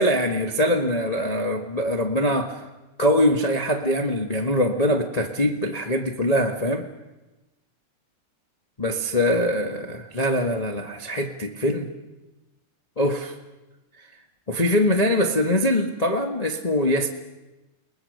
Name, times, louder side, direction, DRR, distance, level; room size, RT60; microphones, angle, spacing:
voice 1, 0.0-2.7 3.0-6.9 8.8-11.9 13.0-13.4 14.5-17.1, equal, 80° left, 2 dB, 0.3 m, -23 dB
30.0 x 20.5 x 6.6 m, 1.1 s
omnidirectional pair, 3.5 m